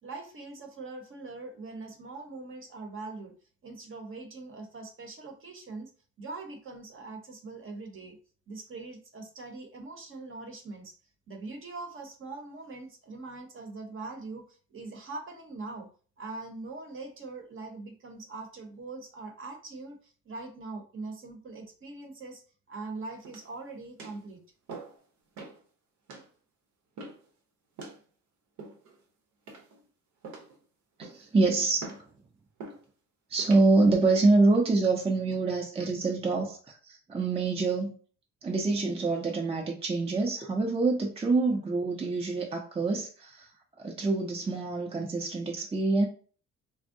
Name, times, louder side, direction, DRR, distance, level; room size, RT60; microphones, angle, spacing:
voice 1, 0.0-3.3 3.6-5.9 6.2-8.2 8.5-11.0 11.3-15.9 16.2-22.4 22.7-24.4, right 3 dB, 45° right, 4 dB, 0.8 m, -42 dB
sound 1, 23.2-23.6 24.0-24.2 24.7-25.0 25.4-25.6 26.1-26.3 27.0-27.3 27.8-28.0 28.6-29.0 29.5-29.8 30.2-30.6 31.0-31.3 31.8-32.1 32.6-32.8 33.4-33.7 34.3-34.6, right 3 dB, 75° right, 0.8 m, -44 dB
voice 2, 31.0-31.8 33.3-38.0 38.4-43.5 43.8-46.1, right 3 dB, 20° right, 1 dB, 0.5 m, -26 dB
3.5 x 2.0 x 2.5 m, 0.40 s
cardioid pair, 90°, 30 cm